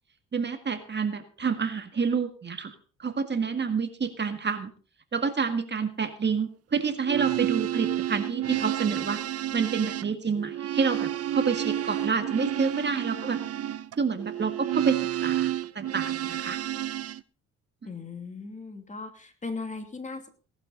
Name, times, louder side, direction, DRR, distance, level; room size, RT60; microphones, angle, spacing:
voice 1, 0.3-2.7 3.0-4.7 5.1-9.2 9.5-13.4 14.0-16.6, right 5 dB, 35° right, 8 dB, 1.9 m, -28 dB
sound 1, 6.9-17.2, right 12 dB, 55° right, 0.7 m, -30 dB
voice 2, 17.8-20.3, left 4 dB, 25° left, 6 dB, 2.7 m, -38 dB
18.0 x 12.0 x 4.0 m, 0.38 s
cardioid pair, 90°, 30 cm